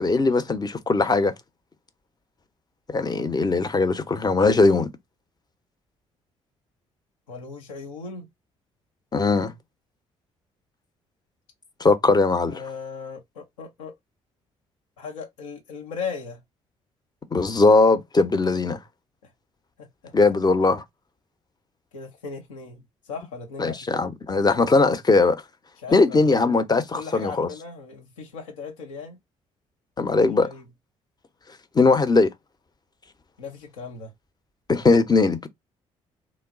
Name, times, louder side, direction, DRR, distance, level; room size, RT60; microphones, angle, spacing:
voice 1, 0.0-1.3 2.9-4.9 9.1-9.5 11.8-12.6 17.3-18.8 20.1-20.8 23.6-25.4 25.9-27.5 30.0-30.5 31.7-32.3 34.7-35.5, left 3 dB, 25° left, 0.7 m, -20 dB
voice 2, 7.3-8.3 12.5-13.9 15.0-16.4 19.2-19.3 19.8-20.1 21.9-23.8 25.8-26.3 26.9-29.2 30.2-30.7 33.4-34.1, left 5 dB, 80° left, 0.7 m, -37 dB
3.0 x 2.2 x 3.7 m
figure-of-eight pair, 45°, 16 cm